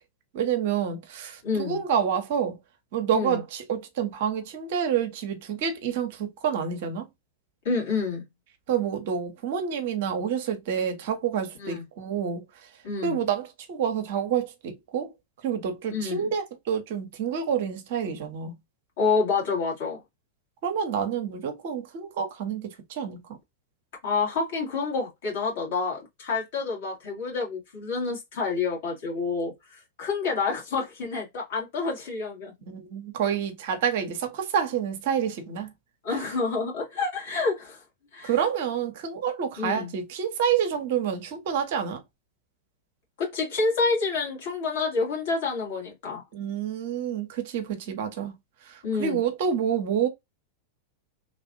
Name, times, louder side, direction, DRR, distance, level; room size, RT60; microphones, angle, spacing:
voice 1, 0.3-2.6 2.9-7.0 8.7-12.4 13.0-15.1 15.4-18.5 20.6-23.2 32.7-35.7 36.1-36.3 38.2-42.0 46.3-48.3 48.7-50.1, right 8 dB, 50° right, 0.7 m, -28 dB
voice 2, 1.4-1.8 3.1-3.4 7.7-8.2 11.6-11.8 12.8-13.2 15.9-16.3 19.0-20.0 24.0-32.5 36.0-37.8 38.1-38.3 39.6-39.9 43.2-46.2 48.8-49.2, left 4 dB, 55° left, 1.8 m, -28 dB
3.1 x 2.5 x 2.5 m
figure-of-eight pair, 90°, 0 cm